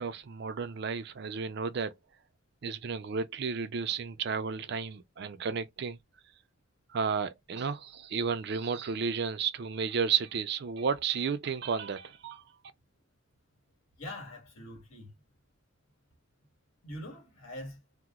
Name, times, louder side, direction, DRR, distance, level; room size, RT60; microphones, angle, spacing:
voice 1, 0.0-1.9 2.6-6.0 6.9-12.4, right 6 dB, 55° right, 0.4 m, -32 dB
voice 2, 14.0-15.1 16.8-17.8, left 1 dB, 85° left, 1.5 m, -43 dB
2.9 x 2.0 x 3.5 m
head